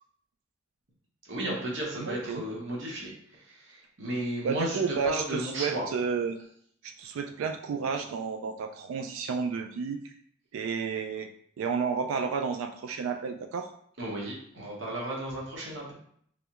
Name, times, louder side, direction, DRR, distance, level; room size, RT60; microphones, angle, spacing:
voice 1, 1.3-5.9 14.0-15.9, right 1 dB, 65° right, -4 dB, 1.0 m, -34 dB
voice 2, 2.0-2.4 4.4-6.4 6.8-10.0 10.5-11.3 11.6-13.7, right 5 dB, 85° right, 6 dB, 0.3 m, -31 dB
3.4 x 3.1 x 3.0 m, 0.64 s
head